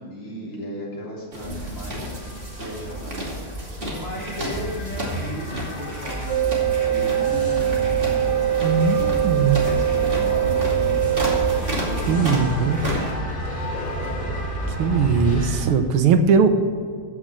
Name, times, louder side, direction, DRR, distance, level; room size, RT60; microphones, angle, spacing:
voice 1, 0.0-2.1 2.6-8.5 8.8-11.1 11.5-12.6, equal, 80° left, -5 dB, 4.5 m, -36 dB
sound 1, 1.3-13.1, right 1 dB, 25° right, 2.7 m, -33 dB
sound 2, 1.5-15.7, right 1 dB, 25° left, 2.8 m, -30 dB
sound 3, 6.3-11.6, right 11 dB, 65° right, 1.3 m, -22 dB
voice 2, 8.6-9.6 12.1-12.8 14.8-16.5, right 5 dB, 80° right, 9 dB, 1.8 m, -19 dB
15.0 x 6.2 x 7.7 m, 2.2 s
omnidirectional pair, 2.4 m